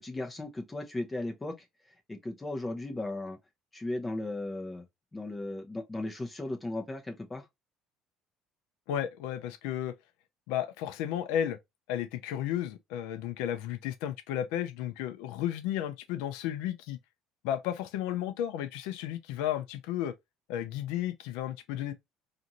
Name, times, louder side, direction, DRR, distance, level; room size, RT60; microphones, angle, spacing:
voice 1, 0.0-1.5 2.1-3.4 3.7-4.8 5.1-7.4, left 2 dB, 15° left, 0.7 m, -36 dB
voice 2, 8.9-9.9 10.5-11.6 11.9-17.0 17.4-20.1 20.5-21.9, left 11 dB, 90° left, 0.4 m, -33 dB
2.6 x 2.5 x 2.8 m
cardioid pair, 125°, 0 cm